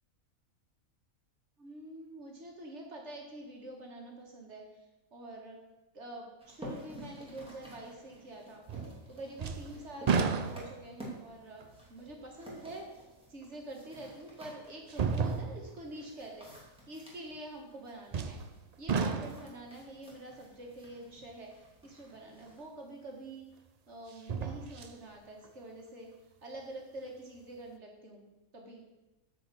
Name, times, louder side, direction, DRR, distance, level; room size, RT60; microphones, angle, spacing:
voice 1, 1.6-4.8 5.1-5.6 5.9-8.6 9.1-11.6 11.9-18.4 18.8-23.5 23.9-26.1 26.4-28.3 28.5-28.8, right 1 dB, 50° right, 0 dB, 2.1 m, -46 dB
sound 1, 6.4-22.7, equal, 5° right, 2.5 m, -52 dB
sound 2, 8.7-9.1 9.4-11.0 11.6-11.7 13.5-13.6 14.9-15.8 18.1-18.6 18.9-19.6 22.6-22.7 24.1-25.0 25.4-25.5, right 5 dB, 70° right, 0.3 m, -32 dB
9.3 x 5.0 x 7.6 m, 1.0 s
omnidirectional pair, 1.5 m